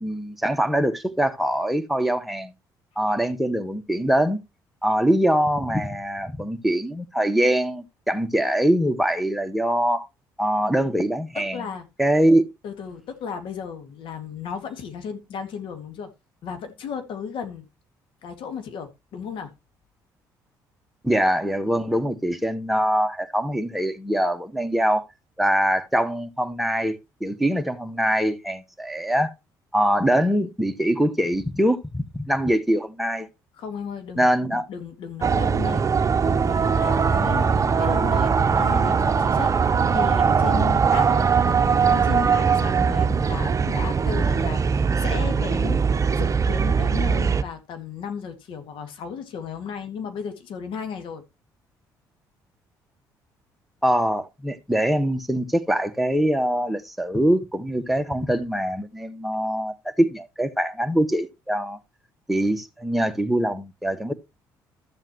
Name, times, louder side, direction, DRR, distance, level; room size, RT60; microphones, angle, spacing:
voice 1, 0.0-2.5 3.0-4.4 4.8-10.1 10.4-11.6 12.0-12.5 21.0-25.1 25.4-29.3 29.7-33.3 34.2-34.7 53.8-61.8 62.3-64.1, right 1 dB, ahead, 1.5 m, -23 dB
voice 2, 11.5-11.9 12.6-16.1 16.4-17.7 18.2-19.5 33.6-39.5 39.9-45.8 46.1-51.2, left 6 dB, 65° left, 2.2 m, -35 dB
sound 1, 35.2-47.4, right 6 dB, 35° right, 0.8 m, -21 dB
13.5 x 7.3 x 3.1 m
hypercardioid pair, 55°, 9 cm